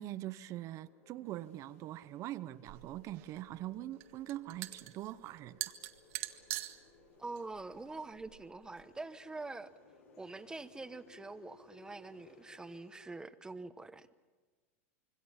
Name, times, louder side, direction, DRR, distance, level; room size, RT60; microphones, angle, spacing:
voice 1, 0.0-5.6, right 14 dB, 40° right, 0.6 m, -43 dB
sound 1, 0.8-12.6, left 5 dB, 65° left, 3.9 m, -66 dB
sound 2, 1.2-13.2, left 4 dB, 85° left, 5.7 m, -65 dB
sound 3, 2.7-8.8, right 17 dB, 60° right, 1.4 m, -45 dB
voice 2, 7.2-9.7 10.2-14.1, right 3 dB, 10° right, 1.0 m, -45 dB
26.5 x 23.5 x 5.7 m
hypercardioid pair, 110°, 8 cm